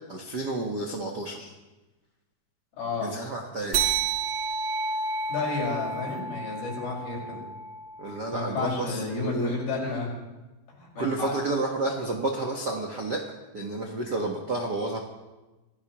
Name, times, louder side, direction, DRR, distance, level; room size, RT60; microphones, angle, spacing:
voice 1, 0.1-1.5 3.0-4.0 8.0-9.6 11.0-13.3 13.5-15.0, right 2 dB, 80° right, 1 dB, 0.9 m, -30 dB
voice 2, 2.8-3.1 5.3-7.4 8.3-10.1 10.8-11.3, left 3 dB, 85° left, -3 dB, 7.3 m, -31 dB
sound 1, 3.7-8.6, right 5 dB, 45° right, 1.7 m, -31 dB
26.0 x 16.0 x 3.0 m, 1.1 s
omnidirectional pair, 4.2 m